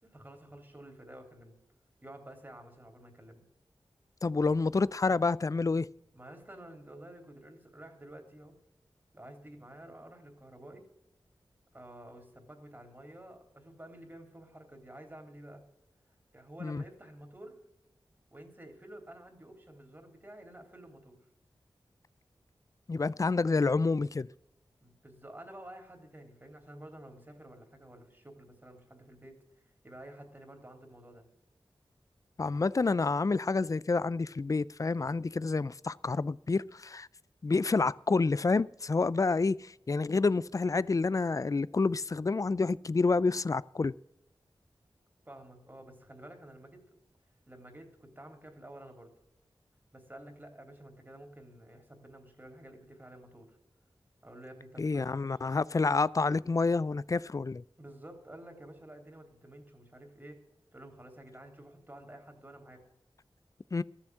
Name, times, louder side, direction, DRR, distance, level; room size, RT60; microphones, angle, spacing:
voice 1, 0.0-1.5 2.0-3.4 6.1-8.5 9.1-10.9 11.7-15.6 16.1-17.6 18.3-21.2 24.8-31.2 45.2-47.0 47.5-49.1 49.9-53.6 54.2-55.4 57.8-60.4 60.7-62.9, right 1 dB, 20° right, 3.3 m, -51 dB
voice 2, 4.2-5.9 16.6-16.8 22.9-24.3 32.4-37.1 37.4-43.9 54.8-57.6 63.7-63.8, left 3 dB, 35° left, 0.4 m, -28 dB
13.5 x 7.2 x 7.6 m
wide cardioid pair, 60°, 9 cm